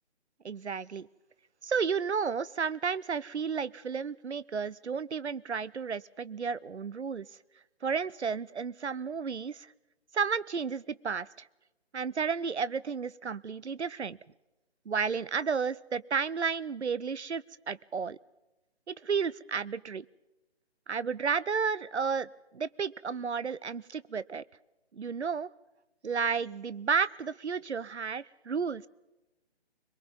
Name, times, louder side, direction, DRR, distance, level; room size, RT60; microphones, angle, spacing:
voice 1, 0.4-1.1 1.6-7.3 7.8-9.7 10.1-11.5 11.9-14.2 14.9-18.2 18.9-20.1 20.9-24.4 24.9-25.5 26.0-28.9, right 6 dB, 85° right, 20 dB, 0.7 m, -32 dB
22.5 x 22.0 x 5.3 m, 1.0 s
figure-of-eight pair, 145°, 33 cm